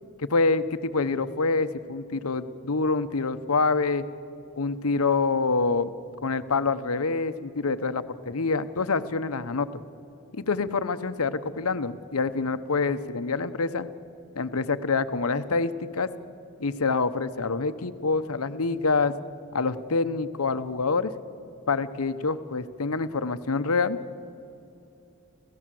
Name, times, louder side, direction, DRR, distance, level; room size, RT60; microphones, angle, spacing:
voice 1, 0.2-4.0 4.6-5.9 6.2-9.7 10.3-13.9 14.3-16.1 16.6-19.1 19.5-21.1 21.7-24.0, left 4 dB, 80° left, 12 dB, 0.9 m, -26 dB
29.5 x 15.5 x 7.7 m, 2.8 s
head